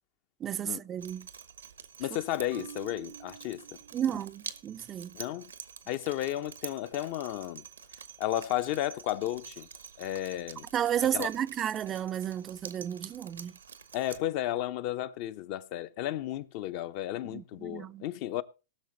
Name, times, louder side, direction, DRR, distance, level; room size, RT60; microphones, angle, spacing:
voice 1, 0.4-1.3 3.9-5.2 10.7-13.6 17.3-18.0, right 10 dB, 30° right, 0.5 m, -32 dB
Drip, 1.0-14.2, right 7 dB, 85° right, 1.2 m, -47 dB
voice 2, 2.0-3.6 5.1-5.5 5.9-7.6 8.2-9.7 10.0-10.7 11.1-11.3 13.9-18.4, left 13 dB, 50° left, 0.8 m, -33 dB
Marimba xylophone, 2.5-4.6, right 9 dB, 60° right, 0.8 m, -49 dB
19.0 x 6.5 x 4.1 m
hypercardioid pair, 105°, 0 cm